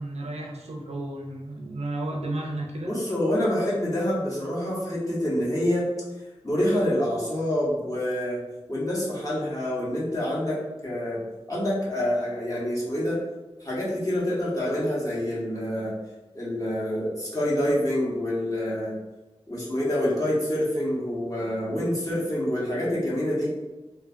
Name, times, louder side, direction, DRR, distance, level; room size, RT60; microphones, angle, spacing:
voice 1, 0.0-3.0, right 1 dB, 90° right, -1 dB, 0.5 m, -33 dB
voice 2, 2.9-5.9 6.4-8.4 8.7-11.2 11.5-13.2 13.6-15.9 16.3-19.0 19.5-23.5, left 1 dB, 35° left, -7 dB, 1.0 m, -27 dB
3.0 x 2.1 x 2.5 m, 1.1 s
wide cardioid pair, 70°, 11 cm